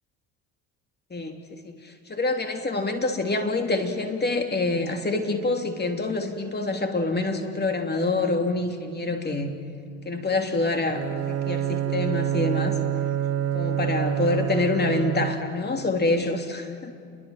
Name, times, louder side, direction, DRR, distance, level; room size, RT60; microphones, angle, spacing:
voice 1, 1.1-9.5 10.0-12.8 13.5-16.9, left 2 dB, 25° left, 5 dB, 3.2 m, -26 dB
Bowed string instrument, 10.9-15.7, right 11 dB, 40° right, 1.2 m, -27 dB
28.5 x 22.5 x 7.4 m, 2.4 s
hypercardioid pair, 65°, 38 cm